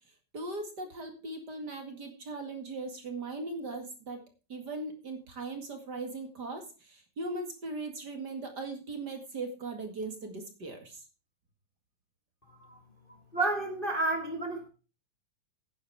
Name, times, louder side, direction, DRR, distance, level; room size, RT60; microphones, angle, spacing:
voice 1, 0.3-4.2 4.5-11.0, right 3 dB, 35° right, 4 dB, 2.0 m, -39 dB
voice 2, 12.5-12.8 13.3-14.7, right 2 dB, 75° left, 3 dB, 0.5 m, -31 dB
10.5 x 10.0 x 4.7 m, 0.34 s
omnidirectional pair, 4.2 m